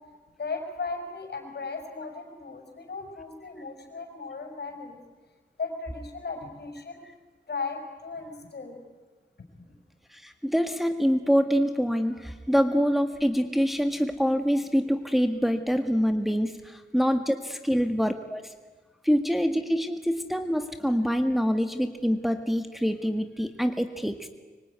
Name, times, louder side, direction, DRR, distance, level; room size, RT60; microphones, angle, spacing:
voice 1, 0.4-5.0 5.6-7.0 7.5-8.8 9.5-9.7 17.7-17.8, left 4 dB, 60° left, 6 dB, 5.8 m, -36 dB
voice 2, 10.1-18.4 19.0-24.3, equal, ahead, 7 dB, 1.7 m, -25 dB
25.0 x 24.0 x 9.6 m, 1.3 s
cardioid pair, 70°, 19 cm